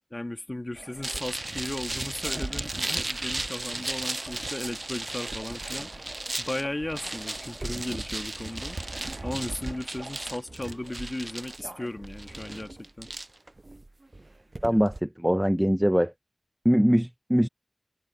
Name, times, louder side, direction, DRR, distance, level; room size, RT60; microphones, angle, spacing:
voice 1, 0.1-5.9 6.4-8.8 9.2-13.1, left 1 dB, 45° left, 1.5 m, -36 dB
sound 1, 0.8-10.4, right 2 dB, 85° right, 1.7 m, -42 dB
sound 2, 1.0-15.0, right 2 dB, 65° right, 0.5 m, -36 dB
voice 2, 14.6-16.1 16.6-17.5, equal, 10° right, 0.7 m, -22 dB
wide cardioid pair, 45°, 0 cm